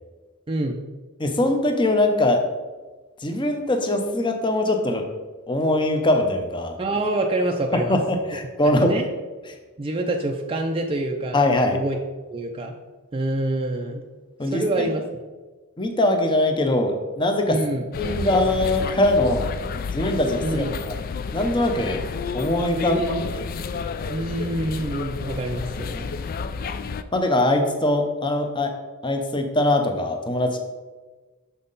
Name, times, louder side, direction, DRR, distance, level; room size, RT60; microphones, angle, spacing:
voice 1, 0.5-0.8 6.8-8.0 8.6-9.0 9.8-11.4 11.7-12.0 12.3-12.7 13.1-14.0 14.5-15.0 17.5-17.8 20.4-20.8 22.8-23.3 24.1-26.1, right 1 dB, 25° right, 2 dB, 0.4 m, -26 dB
voice 2, 1.2-2.4 3.2-5.1 5.5-6.7 7.7-9.0 11.3-11.8 14.4-14.9 15.8-17.6 18.0-19.5 19.9-20.9 21.3-22.0 22.3-23.5 27.1-28.7 29.0-30.6, left 1 dB, 20° left, 5 dB, 0.7 m, -22 dB
sound 1, 17.9-27.0, left 5 dB, 40° left, 0.3 m, -30 dB
6.3 x 5.7 x 4.0 m, 1.3 s
head